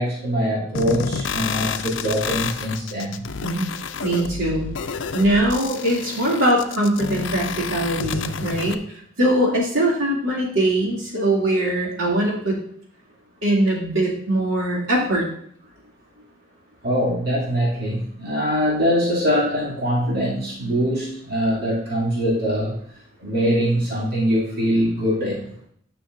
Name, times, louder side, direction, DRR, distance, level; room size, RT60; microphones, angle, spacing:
voice 1, 0.0-3.2 16.8-22.8 23.2-25.4, equal, 50° right, -7 dB, 2.6 m, -23 dB
sound 1, 0.7-8.7, left 5 dB, 65° left, 0.5 m, -29 dB
voice 2, 4.0-4.7 5.1-12.6 13.4-15.3, right 1 dB, 85° right, -3 dB, 2.6 m, -21 dB
10.0 x 5.9 x 2.6 m, 0.64 s
head